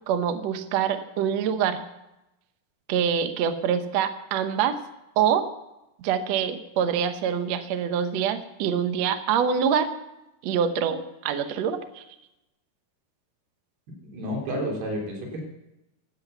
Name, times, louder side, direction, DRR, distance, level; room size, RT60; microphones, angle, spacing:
voice 1, 0.1-1.8 2.9-4.8 5.2-5.4 6.0-9.9 10.4-12.0, right 8 dB, 70° right, 9 dB, 1.7 m, -25 dB
voice 2, 14.0-15.5, equal, 85° right, 0 dB, 5.7 m, -31 dB
16.5 x 12.0 x 6.9 m, 0.92 s
omnidirectional pair, 4.5 m